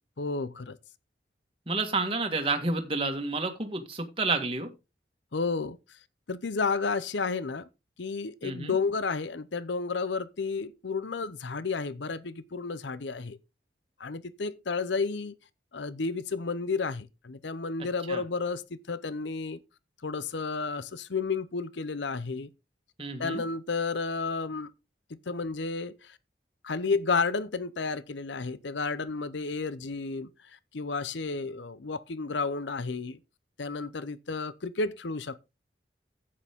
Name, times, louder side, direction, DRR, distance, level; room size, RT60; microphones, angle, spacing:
voice 1, 0.2-0.8 5.3-5.8 6.3-7.7 8.0-13.4 14.0-15.4 15.7-19.6 20.0-22.5 23.2-24.7 25.1-26.2 26.6-30.3 30.7-33.2 33.6-35.4, left 4 dB, 75° left, 0.7 m, -32 dB
voice 2, 1.7-4.7 8.4-8.7 18.1-18.2 23.0-23.4, right 3 dB, 30° right, 1.7 m, -30 dB
11.0 x 8.6 x 3.6 m
head